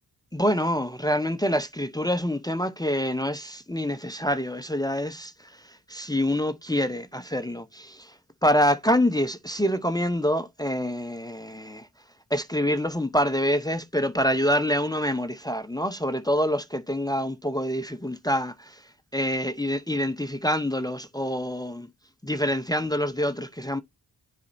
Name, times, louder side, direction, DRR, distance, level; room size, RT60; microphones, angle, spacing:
voice 1, 0.3-8.2 8.4-11.9 12.3-21.9 22.2-23.8, equal, 10° left, 0.6 m, -26 dB
9.5 x 4.1 x 2.6 m
cardioid pair, 45°, 41 cm